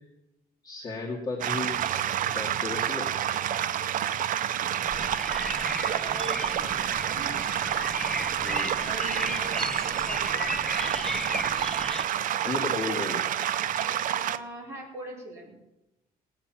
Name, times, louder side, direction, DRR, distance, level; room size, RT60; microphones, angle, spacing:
voice 1, 0.6-1.8 2.3-3.2 8.4-8.7 12.4-13.3, left 3 dB, 25° left, -5 dB, 2.1 m, -34 dB
sound 1, 1.4-14.4, right 10 dB, 60° right, 0.6 m, -28 dB
sound 2, 4.8-12.0, left 1 dB, 5° left, 0.5 m, -35 dB
voice 2, 6.0-6.8 7.0-7.5 8.7-10.6 14.1-15.5, right 1 dB, 15° right, -4 dB, 5.0 m, -41 dB
18.5 x 9.0 x 6.0 m, 0.95 s
cardioid pair, 155°, 16 cm